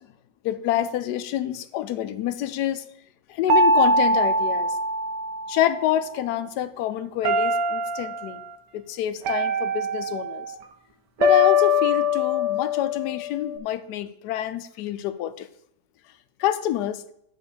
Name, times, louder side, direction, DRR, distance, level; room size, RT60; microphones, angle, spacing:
voice 1, 0.4-2.8 3.3-4.8 5.5-8.4 8.7-10.5 11.2-15.5 16.4-17.0, left 11 dB, 75° left, 12 dB, 1.1 m, -27 dB
sound 1, 3.5-5.8 7.2-8.3 9.3-10.5 11.2-13.6, left 2 dB, 75° right, 1.5 m, -22 dB
9.2 x 4.0 x 7.2 m, 0.73 s
omnidirectional pair, 1.9 m